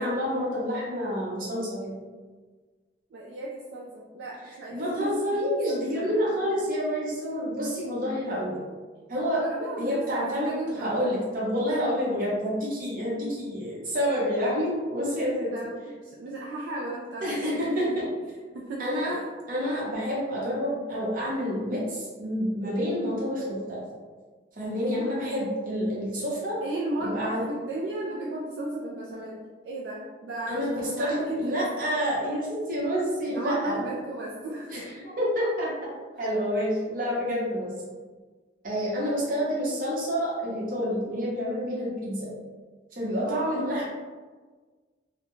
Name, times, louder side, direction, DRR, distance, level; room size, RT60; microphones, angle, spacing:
voice 1, 0.0-2.0 4.7-8.6 9.1-9.4 9.8-15.5 17.2-18.1 18.8-19.2 19.5-23.8 24.6-26.6 27.0-27.4 30.5-33.8 34.7-35.7 36.2-37.7 38.6-42.3 42.9-43.9, equal, 50° right, -6 dB, 0.9 m, -28 dB
voice 2, 3.1-5.4 5.7-6.6 8.2-8.4 9.4-11.1 15.4-19.2 25.0-25.2 26.6-31.7 33.3-34.9 36.2-36.3 39.3-39.5 43.3-43.9, right 1 dB, 70° right, -4 dB, 0.3 m, -35 dB
2.3 x 2.1 x 3.0 m, 1.4 s
head